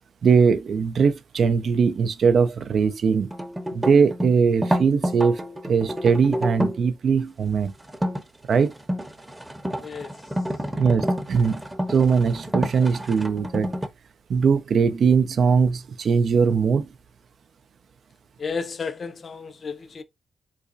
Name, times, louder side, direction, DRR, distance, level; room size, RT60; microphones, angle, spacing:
voice 1, 0.2-3.3 3.7-7.7 8.5-8.7 10.8-11.6 11.9-13.7 14.3-16.9, right 5 dB, 65° right, 0.4 m, -20 dB
sound 1, 3.3-6.9 7.9-8.2 8.7-13.9, equal, 15° right, 0.7 m, -28 dB
voice 2, 9.8-10.1 18.4-20.0, left 5 dB, 55° left, 0.4 m, -32 dB
3.9 x 2.2 x 2.5 m
cardioid pair, 60°, 0 cm